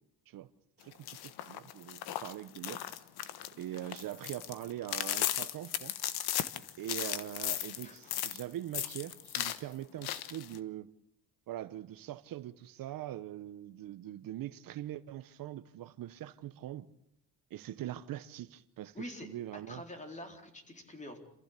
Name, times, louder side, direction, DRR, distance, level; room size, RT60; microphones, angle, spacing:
sound 1, 0.9-8.4 8.7-9.6 10.0-10.6, left 12 dB, 80° left, 1.4 m, -36 dB
voice 1, 1.4-2.8 3.6-5.9 6.8-10.9 11.5-16.9 17.5-19.8, right 13 dB, 65° right, 1.0 m, -42 dB
voice 2, 7.8-8.1 18.9-19.3 19.7-21.2, left 1 dB, 20° left, 4.2 m, -46 dB
28.0 x 15.5 x 8.3 m
cardioid pair, 120°, 37 cm